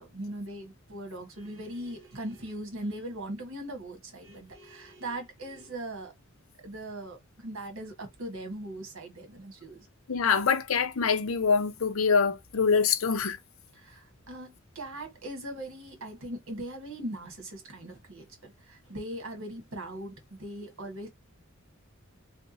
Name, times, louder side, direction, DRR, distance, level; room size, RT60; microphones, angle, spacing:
voice 1, 0.0-6.1 6.6-9.9 13.7-21.1, right 1 dB, 80° right, 1.7 m, -40 dB
voice 2, 10.1-13.4, left 5 dB, 80° left, 0.6 m, -25 dB
3.5 x 3.4 x 2.9 m
head